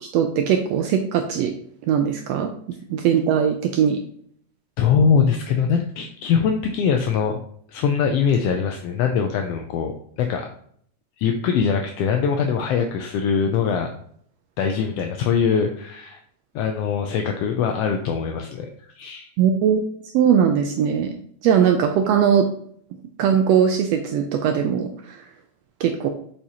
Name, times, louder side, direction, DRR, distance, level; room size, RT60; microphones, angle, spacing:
voice 1, 0.0-1.5 1.9-2.5 2.9-4.0 19.4-19.9 20.1-21.2 21.4-22.4 23.2-25.2 25.8-26.1, right 8 dB, 80° right, 5 dB, 1.5 m, -20 dB
voice 2, 4.8-7.4 7.7-10.5 11.2-13.9 14.6-16.2 16.5-18.7 19.0-19.3, left 6 dB, 80° left, 4 dB, 1.4 m, -22 dB
7.1 x 5.0 x 2.8 m, 0.63 s
omnidirectional pair, 3.3 m